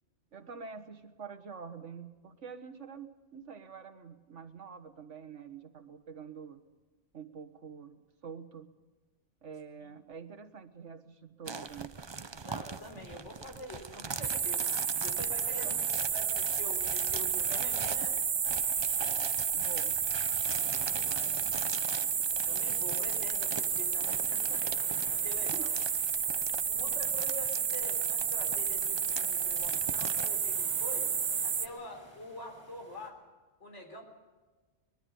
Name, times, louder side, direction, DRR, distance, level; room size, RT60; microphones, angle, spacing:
voice 1, 0.3-6.6 7.1-8.7 9.4-12.0 15.4-15.8 19.5-20.1 25.5-25.7, right 6 dB, 75° right, 7 dB, 1.8 m, -47 dB
sound 1, 11.5-30.3, right 4 dB, 30° right, 0.5 m, -43 dB
voice 2, 12.4-14.7 15.0-15.7 16.0-18.2 20.4-21.8 22.5-24.7 25.1-25.7 26.7-31.1 31.4-33.2 33.6-34.0, left 1 dB, 70° left, 2 dB, 4.5 m, -46 dB
sound 2, 14.2-31.7, right 7 dB, 55° right, 1.1 m, -31 dB
sound 3, 15.3-33.1, equal, 25° left, 4.2 m, -58 dB
24.0 x 22.0 x 5.5 m, 1.3 s
omnidirectional pair, 1.3 m